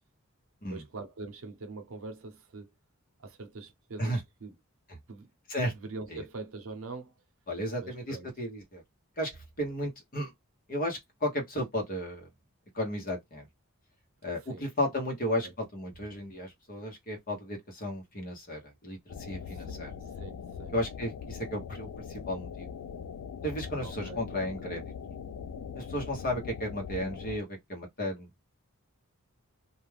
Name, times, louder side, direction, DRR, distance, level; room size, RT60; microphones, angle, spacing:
voice 1, 0.7-2.7 3.2-4.5 5.1-5.3 5.7-7.1 7.8-8.3 14.4-14.7 15.4-15.5 19.5-20.7 23.8-24.8, right 3 dB, 70° right, 0.7 m, -44 dB
voice 2, 7.5-8.8 9.2-10.3 10.7-12.3 12.7-13.5 14.2-19.9 20.7-22.7 23.4-24.8 25.7-28.3, equal, 40° left, 1.1 m, -34 dB
sound 1, 19.1-27.4, left 7 dB, 90° left, 0.3 m, -41 dB
2.4 x 2.3 x 3.2 m
head